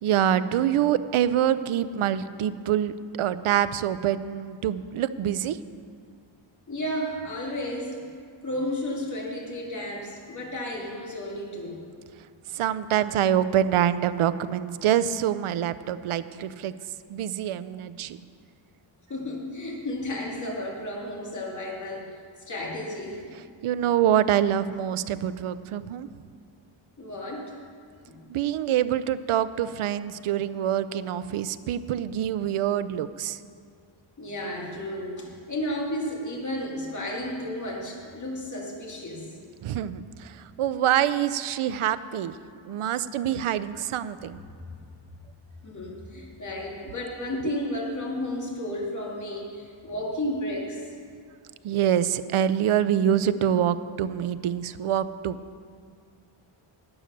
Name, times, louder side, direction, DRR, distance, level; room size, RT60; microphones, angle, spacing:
voice 1, 0.0-2.9 3.2-5.6 12.5-16.7 17.1-18.2 23.6-26.1 28.3-33.4 39.6-42.4 42.7-44.4 47.4-47.5 51.6-55.4, right 10 dB, 80° right, 14 dB, 0.6 m, -25 dB
voice 2, 6.7-8.0 8.4-11.8 19.1-22.2 22.5-23.3 27.0-27.5 28.1-28.3 34.2-39.3 44.7-44.8 45.6-50.8, left 1 dB, 35° left, -2 dB, 2.1 m, -33 dB
12.0 x 9.0 x 6.6 m, 2.2 s
wide cardioid pair, 180°, 50 cm